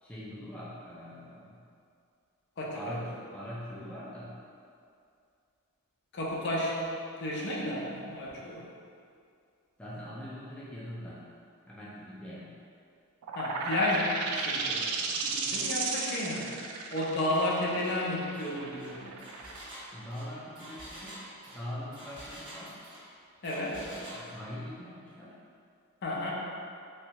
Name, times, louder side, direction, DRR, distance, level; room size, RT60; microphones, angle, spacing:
voice 1, 0.0-1.6 2.7-4.4 9.8-11.3 11.7-12.6 19.9-22.8 23.8-25.4, equal, 5° left, -8 dB, 0.4 m, -42 dB
voice 2, 2.6-3.0 6.1-8.7 13.4-14.9 15.2-16.5 16.9-19.1 23.4-23.8 26.0-26.3, left 1 dB, 55° left, -4 dB, 0.6 m, -32 dB
sound 1, 13.2-20.6, right 4 dB, 85° right, 0.3 m, -34 dB
Engine, 17.3-17.5 17.8-18.0 18.3-23.1 23.4-24.2, right 1 dB, 25° right, 0.8 m, -47 dB
3.2 x 2.7 x 2.9 m, 2.4 s
head